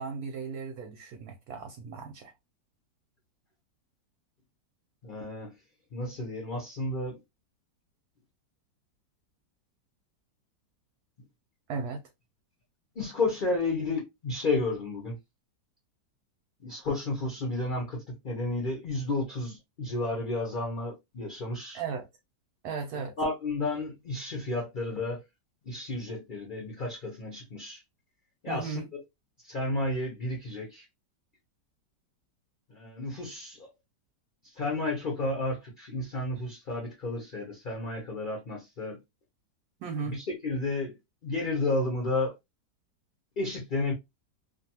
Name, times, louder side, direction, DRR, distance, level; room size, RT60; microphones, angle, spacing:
voice 1, 0.0-2.3 11.7-12.0 21.7-22.1 22.6-23.1 28.5-28.9 39.8-40.2, right 5 dB, 70° right, 1.0 m, -36 dB
voice 2, 5.0-5.5 5.9-7.2 12.9-15.2 16.6-21.8 23.2-25.2 25.6-27.8 28.4-29.0 29.4-30.8 32.7-33.7 34.4-39.0 40.0-40.9 41.2-42.4 43.4-43.9, left 2 dB, 45° left, 0.6 m, -32 dB
2.6 x 2.5 x 2.7 m
omnidirectional pair, 1.9 m